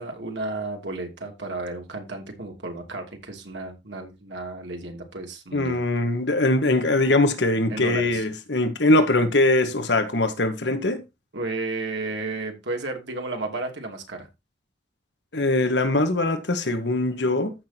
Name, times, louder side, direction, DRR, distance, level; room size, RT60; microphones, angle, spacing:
voice 1, 0.0-5.8 7.7-8.2 11.3-14.3, right 2 dB, 85° right, 2.9 m, -33 dB
voice 2, 5.5-11.0 15.3-17.5, left 2 dB, 75° left, 1.6 m, -22 dB
14.5 x 6.2 x 2.9 m
head